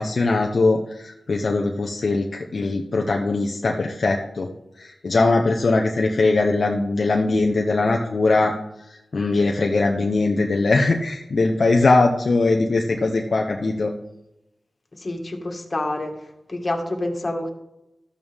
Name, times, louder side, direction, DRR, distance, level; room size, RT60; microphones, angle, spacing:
voice 1, 0.0-4.5 4.8-8.5 8.9-13.9, left 3 dB, 65° left, 1 dB, 0.9 m, -21 dB
voice 2, 15.0-16.1 16.5-17.5, left 2 dB, 45° left, 3 dB, 1.9 m, -27 dB
13.0 x 8.7 x 3.6 m, 0.91 s
cardioid pair, 60°, 0 cm